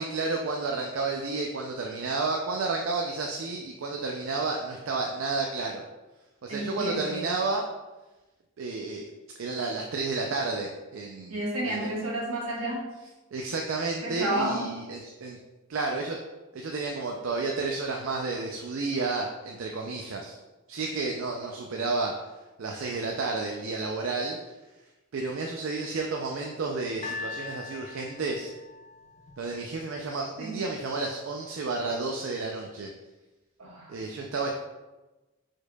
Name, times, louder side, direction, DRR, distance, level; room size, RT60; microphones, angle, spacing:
voice 1, 0.0-5.8 6.4-7.7 8.6-9.0 9.4-11.4 11.6-11.9 13.3-15.4 15.7-16.2 16.5-20.4 20.7-22.2 22.6-24.4 25.1-28.5 29.4-32.9 33.9-34.5, right 3 dB, 65° right, 1 dB, 0.4 m, -31 dB
voice 2, 6.5-7.2 11.3-12.9 14.0-14.6 30.4-30.6 33.6-33.9, right 1 dB, 80° right, -4 dB, 1.4 m, -30 dB
sound 1, 27.0-30.2 31.0-31.1, left 4 dB, 35° left, 0.5 m, -41 dB
4.6 x 4.5 x 2.2 m, 1.1 s
head